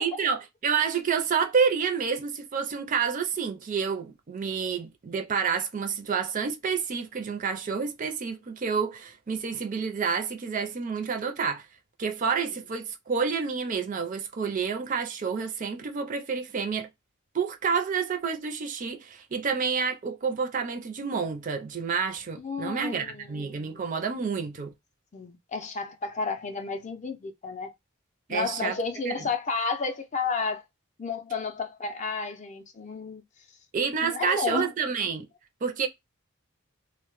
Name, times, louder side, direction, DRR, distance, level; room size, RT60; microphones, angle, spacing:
voice 1, 0.0-11.7 12.0-16.9 17.3-24.7 28.3-28.8 29.0-29.3 33.7-35.3 35.6-35.9, right 6 dB, 40° right, 0.4 m, -29 dB
voice 2, 22.4-23.8 25.1-27.7 28.3-30.6 31.0-33.2 34.0-34.7, left 4 dB, 35° left, 0.4 m, -32 dB
2.1 x 2.0 x 2.9 m
head